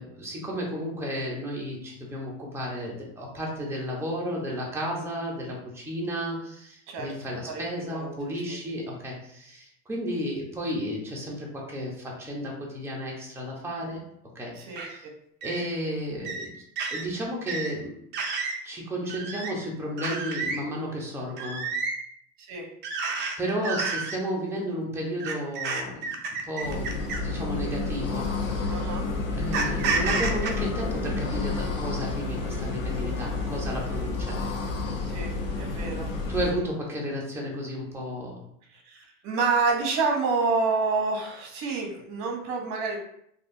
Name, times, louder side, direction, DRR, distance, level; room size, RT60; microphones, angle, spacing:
voice 1, 0.0-14.0 14.3-14.5 14.9-15.1 15.4-16.5 16.9-17.9 18.6-21.6 23.4-26.1 26.5-28.7 29.3-34.4 36.3-38.4, equal, 5° right, -3 dB, 0.8 m, -33 dB
voice 2, 6.9-7.6 7.9-8.1 8.5-8.6 14.5-15.1 22.4-22.7 28.7-29.0 35.0-36.1 38.7-43.0, right 4 dB, 45° right, 2 dB, 1.0 m, -28 dB
sound 1, 14.8-14.9 15.4-15.6 16.2-16.5 16.8-17.0 17.5-17.7 18.1-18.6 19.1-19.5 20.0-20.6 21.4-22.0 22.8-23.3 23.6-24.2 25.2-27.3 28.2-28.4 29.5-30.5, right 4 dB, 30° right, 0.5 m, -30 dB
sound 2, 26.6-36.5, left 3 dB, 40° left, 0.8 m, -30 dB
3.3 x 2.5 x 2.6 m, 0.70 s
supercardioid pair, 115°, 39 cm